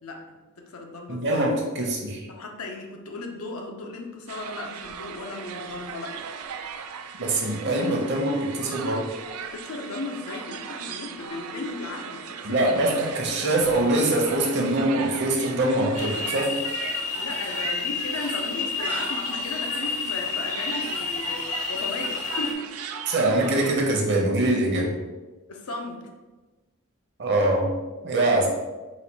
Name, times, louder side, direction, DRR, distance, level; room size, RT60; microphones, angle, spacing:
voice 1, 0.0-1.4 2.3-6.2 9.4-12.7 17.1-22.7 25.5-26.0 28.2-28.5, left 2 dB, 75° left, 3 dB, 0.6 m, -36 dB
voice 2, 1.1-2.3 7.2-9.1 12.4-16.5 23.1-24.9 27.2-27.7 28.0-28.5, right 1 dB, 50° right, 0 dB, 0.8 m, -23 dB
sound 1, 4.3-23.8, right 7 dB, 80° right, 0.4 m, -38 dB
Rainforest at Night, 16.0-22.5, left 6 dB, 35° left, 0.5 m, -30 dB
4.1 x 2.3 x 4.6 m, 1.2 s
head